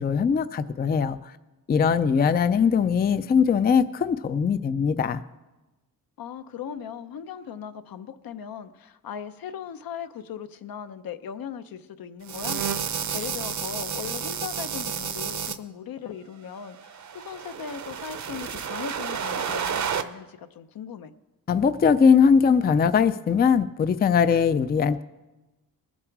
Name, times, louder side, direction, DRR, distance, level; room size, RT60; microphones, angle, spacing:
voice 1, 0.0-1.3 1.7-5.2 21.5-25.0, left 6 dB, 25° left, 13 dB, 0.4 m, -21 dB
voice 2, 6.2-21.1, left 8 dB, 70° left, 10 dB, 0.8 m, -38 dB
sound 1, 12.3-15.6 16.7-20.0, right 7 dB, 50° right, 0.7 m, -31 dB
20.0 x 7.4 x 4.7 m, 1.1 s
cardioid pair, 110°, 36 cm